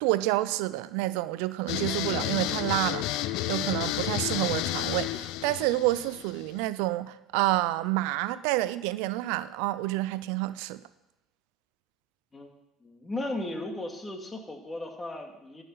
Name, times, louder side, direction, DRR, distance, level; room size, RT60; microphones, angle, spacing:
voice 1, 0.0-3.2 3.5-10.8, right 17 dB, 80° right, 0.3 m, -28 dB
sound 1, 1.7-6.6, left 14 dB, 75° left, 0.4 m, -31 dB
voice 2, 12.8-15.6, left 1 dB, 20° left, 2.0 m, -36 dB
13.5 x 5.6 x 5.6 m
supercardioid pair, 85°, 0 cm